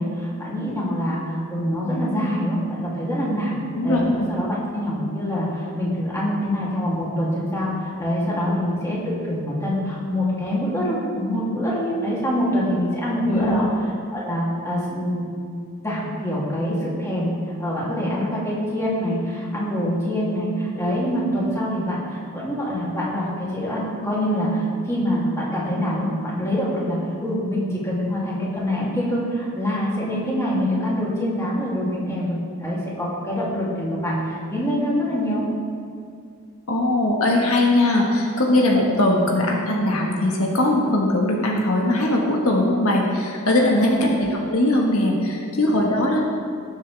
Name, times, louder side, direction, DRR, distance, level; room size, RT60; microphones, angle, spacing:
voice 1, 0.0-13.6 14.1-15.3 15.8-35.4 43.9-44.0, equal, 15° left, -7 dB, 2.8 m, -25 dB
voice 2, 3.7-4.1 13.3-13.6 36.7-46.2, left 1 dB, 75° left, -1 dB, 1.5 m, -20 dB
19.0 x 7.5 x 3.4 m, 2.4 s
head